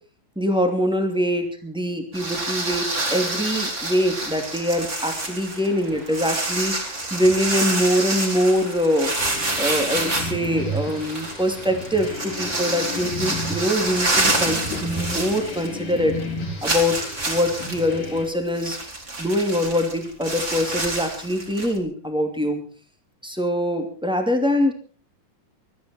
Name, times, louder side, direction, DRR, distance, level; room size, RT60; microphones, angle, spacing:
voice 1, 0.4-9.1 9.6-16.2 16.6-18.8 19.2-22.6 23.2-24.7, equal, ahead, 4 dB, 2.1 m, -23 dB
sound 1, 2.1-15.9 16.2-16.3 16.6-21.8, right 2 dB, 20° right, 3.1 m, -27 dB
sound 2, 3.7-14.9, right 2 dB, 70° right, 6.1 m, -44 dB
sound 3, 9.2-18.2, left 1 dB, 70° left, 5.9 m, -33 dB
21.0 x 13.5 x 4.5 m, 0.40 s
omnidirectional pair, 3.8 m